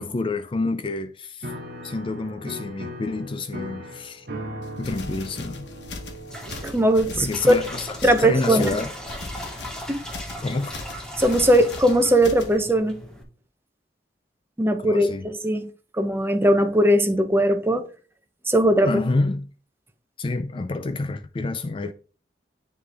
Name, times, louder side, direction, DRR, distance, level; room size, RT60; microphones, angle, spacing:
voice 1, 0.0-1.5 1.8-4.3 4.8-5.7 7.2-8.9 10.4-10.8 14.8-15.3 18.8-19.5 20.2-21.9, left 3 dB, 30° left, 0.4 m, -28 dB
Piano, 1.4-8.2, equal, 60° right, 1.1 m, -39 dB
sound 1, 4.6-12.6, left 3 dB, 80° left, 1.1 m, -39 dB
sound 2, 6.3-13.2, equal, 5° left, 1.2 m, -38 dB
voice 2, 6.6-7.5 8.0-8.7 9.9-10.0 11.2-13.0 14.6-15.7 16.0-17.9 18.5-19.0, right 1 dB, 15° right, 0.7 m, -19 dB
9.7 x 3.3 x 3.4 m
head